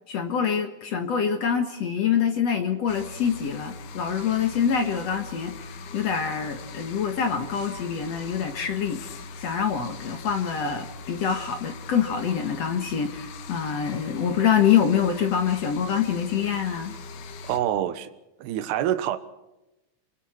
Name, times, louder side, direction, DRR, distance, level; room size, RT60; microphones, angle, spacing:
voice 1, 0.1-9.0 9.4-17.0, left 7 dB, 65° left, 1.6 m, -25 dB
sound 1, 2.9-17.6, left 3 dB, 80° left, 4.2 m, -41 dB
voice 2, 17.4-18.1 18.4-19.2, right 11 dB, 70° right, 3.0 m, -26 dB
28.5 x 24.5 x 4.5 m
omnidirectional pair, 5.4 m